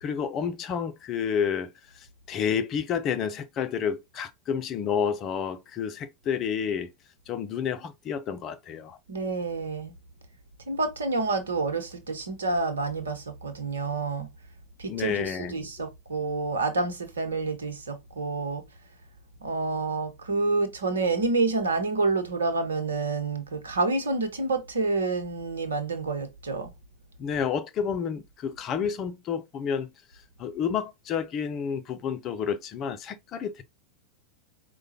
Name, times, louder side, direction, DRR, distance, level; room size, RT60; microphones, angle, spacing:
voice 1, 0.0-6.9 7.3-9.0 14.9-15.5 27.2-29.9 30.4-33.6, left 7 dB, 35° left, 0.6 m, -30 dB
voice 2, 9.1-9.9 10.7-14.3 14.8-18.6 19.4-26.7, right 3 dB, 75° right, 1.0 m, -28 dB
4.8 x 2.2 x 2.8 m
figure-of-eight pair, 90°, 0 cm